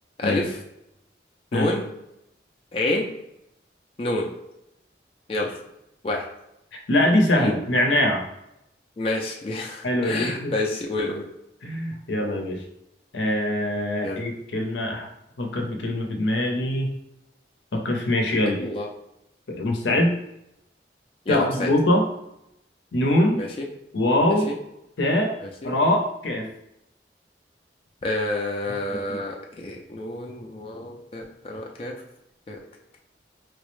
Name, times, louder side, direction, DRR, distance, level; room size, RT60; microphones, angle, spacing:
voice 1, 0.2-0.5 1.5-1.8 2.7-3.0 4.0-4.3 5.3-5.6 6.0-6.2 7.3-7.5 9.0-11.2 14.0-14.2 18.6-18.9 19.9-20.0 21.3-21.7 23.4-23.5 24.5-24.6 25.4-25.7 28.0-31.9 32.5-32.6, left 2 dB, 30° left, 0 dB, 0.3 m, -28 dB
voice 2, 6.7-8.3 9.8-10.5 11.6-12.6 13.1-15.1 15.4-16.9 17.7-18.6 19.5-20.1 21.3-22.1 22.9-23.4 23.9-24.5 25.0-25.4 25.6-26.5 28.7-29.2, left 1 dB, 80° left, 2 dB, 0.6 m, -23 dB
4.6 x 2.0 x 3.0 m, 0.84 s
head